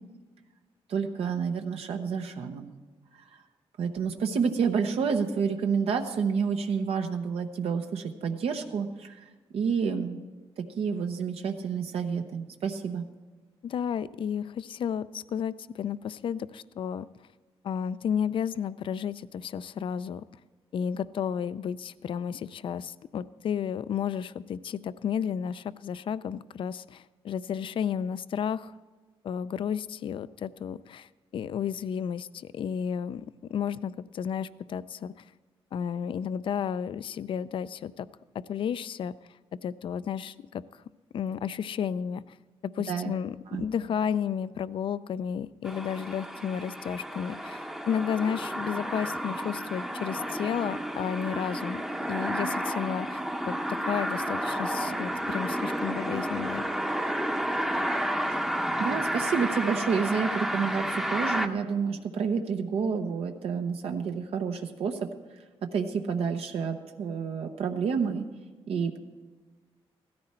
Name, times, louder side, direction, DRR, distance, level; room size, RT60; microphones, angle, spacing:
voice 1, 0.9-2.7 3.1-3.4 3.8-10.2 10.6-13.0 42.9-43.1 43.5-43.6 58.3-58.5 58.8-65.1 65.6-68.3 68.7-69.0, right 6 dB, 75° right, 4 dB, 0.9 m, -29 dB
voice 2, 13.6-17.1 17.6-20.2 20.7-28.7 29.2-33.2 33.5-35.2 35.7-38.1 38.5-39.1 39.6-40.6 41.1-42.4 42.8-51.8 52.1-53.2 53.5-53.6 53.9-56.7, left 8 dB, 55° left, 16 dB, 0.4 m, -32 dB
sound 1, 45.6-61.5, equal, 5° right, 0.7 m, -31 dB
16.0 x 13.5 x 4.4 m, 1.3 s
wide cardioid pair, 145°, 10 cm